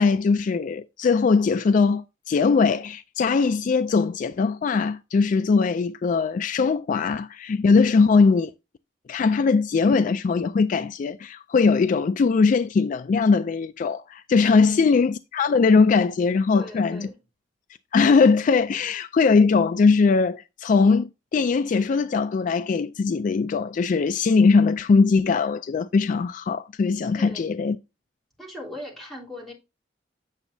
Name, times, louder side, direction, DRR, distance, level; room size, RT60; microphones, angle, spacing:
voice 1, 0.0-8.5 9.1-17.1 17.9-27.8, left 4 dB, 45° left, 0.3 m, -20 dB
voice 2, 16.5-17.1 27.1-27.5 28.4-29.5, left 1 dB, ahead, 3.3 m, -39 dB
8.9 x 6.9 x 2.7 m
head